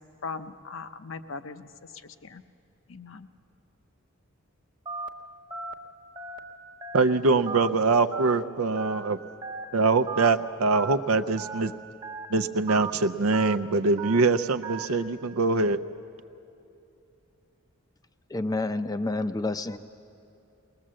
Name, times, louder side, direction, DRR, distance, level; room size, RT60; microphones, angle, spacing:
voice 1, 0.2-1.7 2.2-2.4 2.9-3.3, left 4 dB, 60° left, 10 dB, 0.7 m, -39 dB
Telephone, 4.9-5.1 5.5-5.7 6.2-6.4 6.8-7.0 7.5-7.7 8.1-8.3 8.8-9.0 9.4-9.6 10.1-10.3 10.7-10.9 11.4-11.6 12.0-12.3 12.7-12.9 13.3-13.6 14.0-14.2 14.6-14.9, right 4 dB, 20° right, 1.0 m, -35 dB
voice 2, 6.9-9.2 9.7-11.7 12.3-15.8, right 3 dB, 80° right, 11 dB, 0.6 m, -23 dB
voice 3, 18.3-19.8, left 2 dB, 15° left, 11 dB, 0.5 m, -29 dB
20.5 x 20.0 x 7.5 m, 2.7 s
head